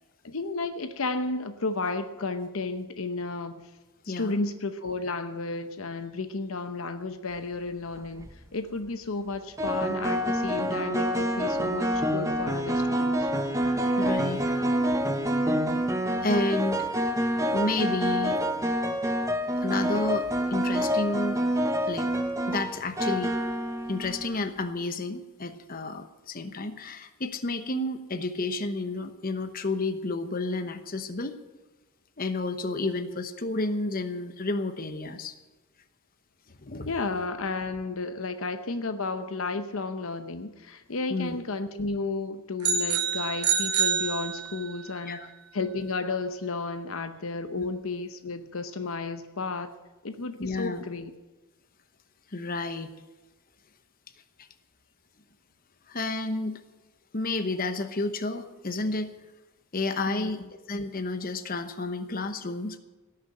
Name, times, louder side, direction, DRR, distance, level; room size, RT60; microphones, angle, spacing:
voice 1, 0.2-3.6 4.0-13.3 36.9-49.7 50.0-51.1 60.1-60.4, left 3 dB, 65° left, 9 dB, 0.8 m, -33 dB
voice 2, 4.1-4.4 14.0-14.4 16.2-16.9 17.5-18.4 19.6-21.4 21.9-22.1 22.5-23.3 23.9-31.3 32.2-35.3 36.6-36.9 41.1-41.4 45.1-45.3 47.6-47.7 50.4-50.8 52.3-52.9 55.9-56.6 57.1-59.1 59.7-60.4 60.7-62.8, left 2 dB, 40° left, 8 dB, 1.0 m, -31 dB
sound 1, 8.0-8.3 9.6-24.4, equal, 15° right, 0.9 m, -27 dB
sound 2, 42.6-44.8, right 7 dB, 85° right, 1.3 m, -27 dB
17.5 x 6.7 x 8.8 m, 1.2 s
head